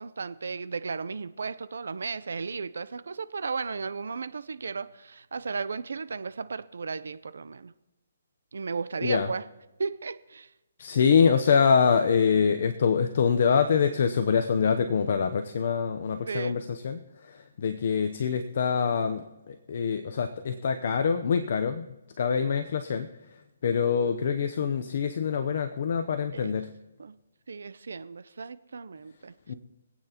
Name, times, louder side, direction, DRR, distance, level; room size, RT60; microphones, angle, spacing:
voice 1, 0.0-7.7 8.5-9.5 9.8-10.5 16.3-16.7 26.3-26.5 27.0-27.2 27.5-29.3, right 4 dB, 80° right, 15 dB, 0.6 m, -35 dB
voice 2, 10.8-17.0 17.6-21.8 22.2-23.1 23.6-26.7 29.5-29.6, left 6 dB, 50° left, 7 dB, 0.8 m, -25 dB
25.0 x 8.9 x 3.0 m, 1.0 s
hypercardioid pair, 165°, 0 cm